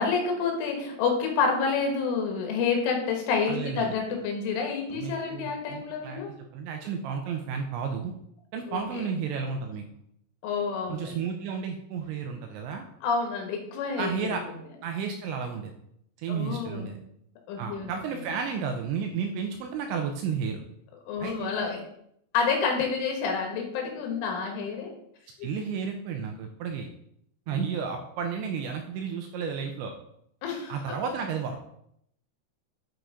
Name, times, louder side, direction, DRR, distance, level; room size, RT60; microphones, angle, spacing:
voice 1, 0.0-6.3 8.7-9.0 10.4-11.2 13.0-14.3 16.3-16.9 17.5-17.9 21.1-21.8 22.3-24.9 25.4-25.5 27.5-27.6 30.4-31.0, left 5 dB, 75° left, 2 dB, 3.9 m, -29 dB
voice 2, 3.5-3.9 4.9-6.2 6.5-8.1 8.5-9.8 10.9-12.8 14.0-14.4 14.8-15.7 16.2-17.0 17.6-20.6 21.2-21.7 25.4-26.9 27.5-29.9 30.7-31.6, right 6 dB, 85° right, 4 dB, 2.8 m, -32 dB
10.5 x 4.7 x 5.0 m, 0.73 s
omnidirectional pair, 5.9 m